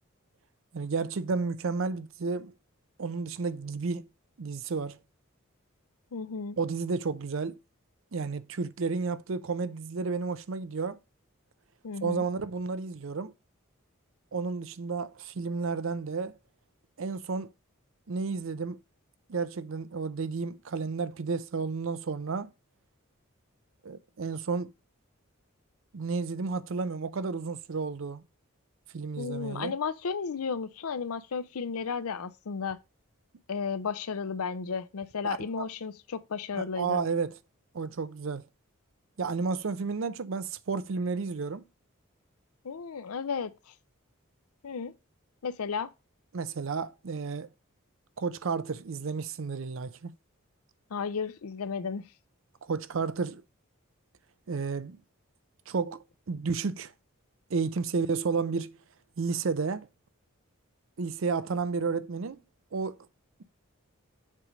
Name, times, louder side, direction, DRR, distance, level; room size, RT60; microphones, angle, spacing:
voice 1, 0.7-2.5 3.0-4.1 4.4-5.0 6.6-7.6 8.1-11.0 12.0-13.3 14.3-16.4 17.0-17.5 18.1-18.8 19.3-22.5 23.8-24.7 25.9-28.2 28.9-29.7 35.2-35.6 36.5-37.3 37.7-38.4 39.2-41.6 46.3-47.5 48.2-50.1 52.6-53.4 54.5-55.0 55.7-56.9 57.5-58.7 59.2-59.9 61.0-62.4 62.7-63.0, right 4 dB, 65° right, 0.5 m, -32 dB
voice 2, 6.1-6.6 11.8-12.3 29.2-32.8 33.5-37.0 42.6-43.7 44.6-44.9 45.4-45.9 50.9-52.1, left 5 dB, 90° left, 0.6 m, -33 dB
7.5 x 3.2 x 4.9 m
head